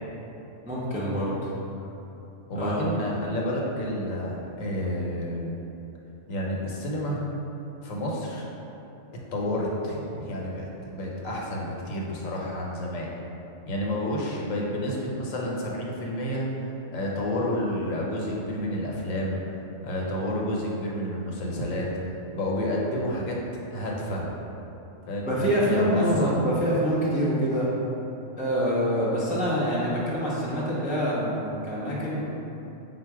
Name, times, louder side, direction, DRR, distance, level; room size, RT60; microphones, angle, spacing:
voice 1, 0.7-1.5 2.5-2.8 25.2-27.7 28.4-32.3, equal, 10° right, -8 dB, 0.3 m, -25 dB
voice 2, 2.5-5.6 6.3-7.2 7.8-8.5 9.3-13.1 13.7-16.5 16.9-19.4 19.8-21.9 22.3-23.3 23.7-24.3 25.1-26.3, left 1 dB, 85° left, -3 dB, 1.1 m, -30 dB
3.9 x 2.4 x 4.6 m, 3.0 s
omnidirectional pair, 1.3 m